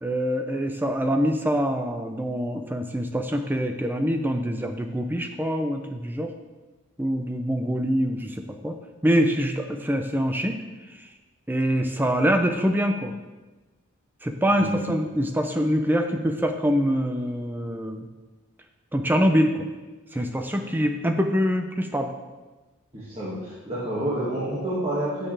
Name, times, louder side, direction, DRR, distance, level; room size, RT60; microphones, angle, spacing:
voice 1, 0.0-6.3 7.0-8.7 9.0-10.6 11.5-13.1 14.2-18.1 18.9-19.7 20.1-22.1, equal, 10° right, 5 dB, 0.6 m, -24 dB
voice 2, 14.5-15.0 22.9-25.3, right 1 dB, 25° right, -9 dB, 2.0 m, -29 dB
14.5 x 6.6 x 3.4 m, 1.2 s
head